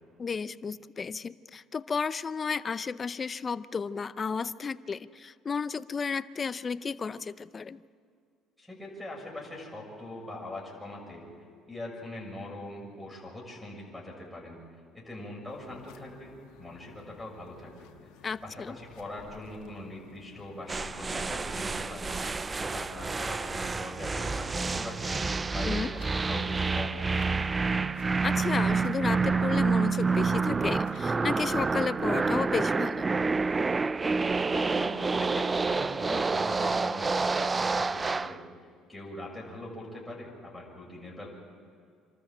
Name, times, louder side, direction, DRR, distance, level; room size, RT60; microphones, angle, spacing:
voice 1, 0.2-7.8 18.2-18.8 25.6-25.9 28.2-33.1, left 5 dB, 30° left, 15 dB, 0.6 m, -33 dB
voice 2, 8.6-11.2 11.7-14.6 14.9-17.9 18.4-22.1 22.6-25.2 25.5-27.4 34.4-38.4 38.9-41.3, left 1 dB, 5° left, -3 dB, 6.8 m, -42 dB
sound 1, 15.5-31.5, left 8 dB, 85° left, 1.6 m, -55 dB
sound 2, 20.7-38.4, right 4 dB, 25° right, 0.5 m, -28 dB
26.5 x 13.5 x 7.5 m, 2.4 s
cardioid pair, 100°, 0 cm